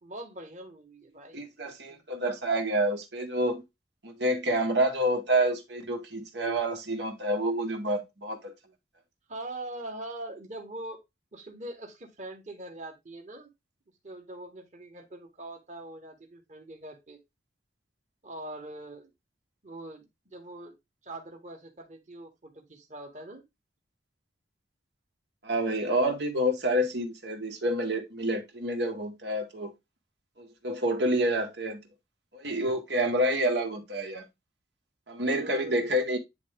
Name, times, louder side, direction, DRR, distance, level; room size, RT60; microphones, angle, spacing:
voice 1, 0.0-1.5 1.9-2.0 9.3-11.0 11.3-13.5 14.0-17.2 18.2-19.1 19.6-20.7 21.0-23.4 35.2-35.9, right 1 dB, 40° right, 1.6 m, -42 dB
voice 2, 1.3-3.6 4.0-8.5 25.4-29.7 30.4-31.8 32.3-34.2 35.1-36.2, right 1 dB, 75° right, 1.7 m, -28 dB
9.5 x 3.5 x 3.7 m
head